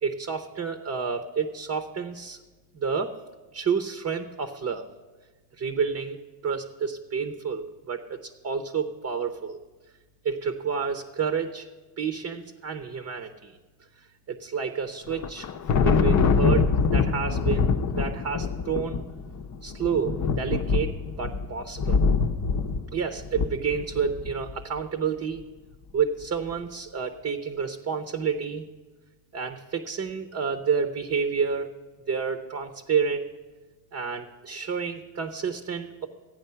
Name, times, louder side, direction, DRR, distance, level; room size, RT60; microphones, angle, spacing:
voice 1, 0.0-2.4 2.7-3.1 3.5-4.9 5.6-6.2 6.4-9.6 10.2-11.7 12.0-13.6 14.3-15.5 15.8-17.6 17.9-19.0 19.6-22.0 22.9-25.4 25.9-28.7 29.3-31.7 32.1-33.3 33.9-36.1, right 6 dB, 35° right, 7 dB, 0.8 m, -29 dB
Thunder, 15.1-24.5, left 5 dB, 40° left, 0.7 m, -24 dB
13.5 x 8.9 x 5.6 m, 1.3 s
cardioid pair, 115°, 43 cm